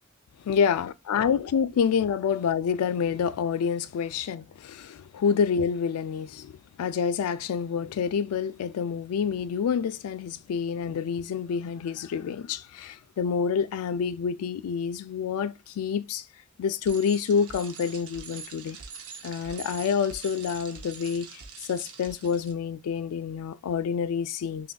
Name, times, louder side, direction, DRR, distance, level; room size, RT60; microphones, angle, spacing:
voice 1, 0.4-16.3 16.6-18.8 19.2-24.7, left 6 dB, 90° left, 0.3 m, -28 dB
Bicycle, 16.8-22.5, right 5 dB, 80° right, 0.6 m, -44 dB
5.5 x 2.6 x 2.2 m
head